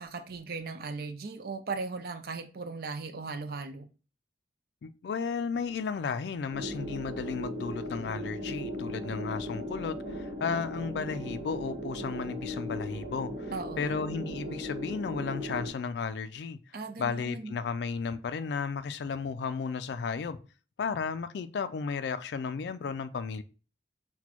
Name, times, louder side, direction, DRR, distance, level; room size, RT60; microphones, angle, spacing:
voice 1, 0.0-3.9 13.5-14.0 16.7-17.5, right 4 dB, 55° right, 0.5 m, -38 dB
voice 2, 4.8-16.6 17.0-20.4 20.8-23.4, left 5 dB, 65° left, 0.3 m, -34 dB
sound 1, 6.5-15.7, equal, 35° right, 1.2 m, -37 dB
5.9 x 2.2 x 2.9 m
head